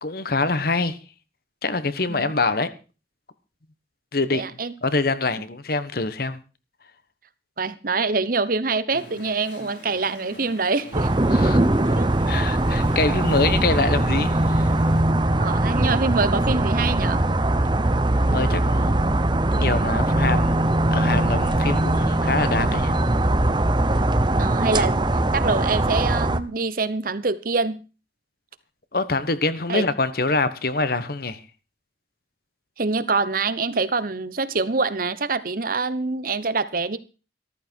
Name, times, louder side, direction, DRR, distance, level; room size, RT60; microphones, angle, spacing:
voice 1, 0.0-1.0 1.6-2.7 4.1-4.4 4.8-6.4 11.3-11.6 12.3-14.7 18.2-19.1 19.5-23.0 28.9-31.4, left 3 dB, 55° left, 1.2 m, -25 dB
voice 2, 4.3-4.7 7.6-11.1 12.0-12.1 15.4-17.2 24.4-25.1 25.3-27.8 29.7-29.8 32.8-37.0, right 4 dB, 50° right, 1.0 m, -25 dB
Chatter / Stream, 8.9-15.0, left 1 dB, 85° left, 6.0 m, -44 dB
sound 1, 10.9-26.4, right 1 dB, 25° right, 0.8 m, -21 dB
14.0 x 13.5 x 4.6 m
head